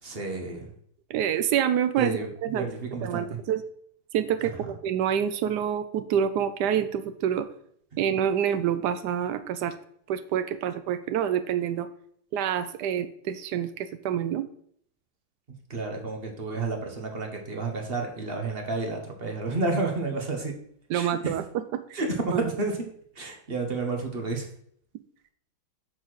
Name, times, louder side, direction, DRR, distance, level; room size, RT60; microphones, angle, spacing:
voice 1, 0.0-0.7 2.0-3.4 4.4-4.7 7.9-8.0 15.7-20.5 20.9-21.3 21.9-22.8 23.1-24.5, right 3 dB, 35° right, 2 dB, 1.1 m, -31 dB
voice 2, 1.1-2.6 3.0-3.6 4.1-7.5 8.0-9.7 10.1-11.9 12.3-14.5 20.9-22.0 22.3-22.4, right 9 dB, 80° right, 11 dB, 0.9 m, -27 dB
6.9 x 4.4 x 6.1 m, 0.65 s
omnidirectional pair, 2.3 m